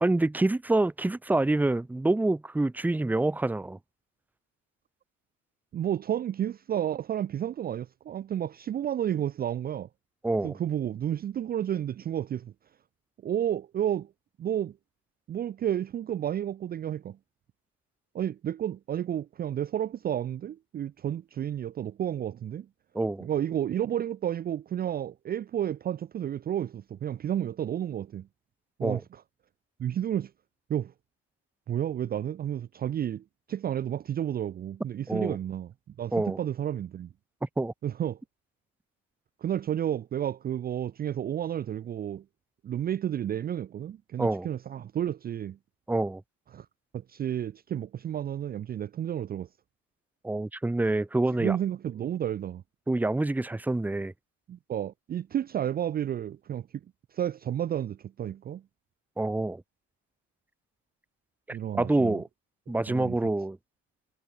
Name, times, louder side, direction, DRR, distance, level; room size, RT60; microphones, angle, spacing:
voice 1, 0.0-3.8 10.2-10.6 22.9-23.3 28.8-29.0 35.1-35.4 36.1-36.4 37.6-37.7 44.2-44.5 45.9-46.2 50.2-51.6 52.9-54.1 59.2-59.6 61.5-62.3 62.7-63.6, right 2 dB, 5° right, 0.9 m, -27 dB
voice 2, 5.7-9.9 10.4-12.5 13.2-14.1 14.4-14.8 15.3-17.2 18.1-22.7 23.2-28.3 28.8-29.2 29.8-30.3 30.7-30.9 31.7-35.7 36.0-37.1 37.8-38.2 39.4-42.2 42.6-45.6 46.5-46.7 46.9-49.5 51.4-52.6 54.5-56.7 57.1-58.6 61.5-62.2 62.9-63.1, right 10 dB, 30° right, 0.6 m, -31 dB
cardioid pair, 150°, 31 cm